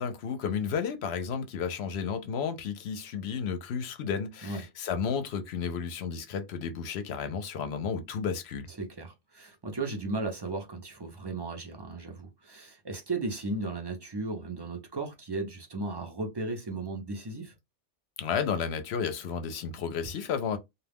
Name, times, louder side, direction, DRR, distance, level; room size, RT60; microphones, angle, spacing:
voice 1, 0.0-8.7 18.2-20.6, left 6 dB, 65° left, 0.8 m, -32 dB
voice 2, 8.8-17.5, right 2 dB, 35° right, 0.4 m, -35 dB
2.3 x 2.2 x 3.4 m
omnidirectional pair, 1.2 m